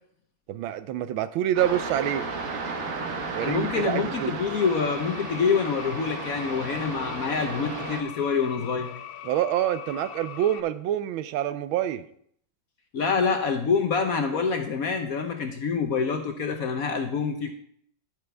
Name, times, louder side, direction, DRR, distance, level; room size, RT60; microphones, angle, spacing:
voice 1, 0.5-2.3 3.3-4.3 9.2-12.1, right 11 dB, 80° right, 13 dB, 1.4 m, -27 dB
sound 1, 1.6-8.0, right 3 dB, 45° right, 1.4 m, -34 dB
voice 2, 3.4-8.9 12.9-17.5, left 5 dB, 60° left, 5 dB, 1.0 m, -26 dB
sound 2, 4.6-10.6, left 11 dB, 80° left, 1.3 m, -41 dB
10.5 x 9.5 x 3.3 m, 0.66 s
omnidirectional pair, 2.2 m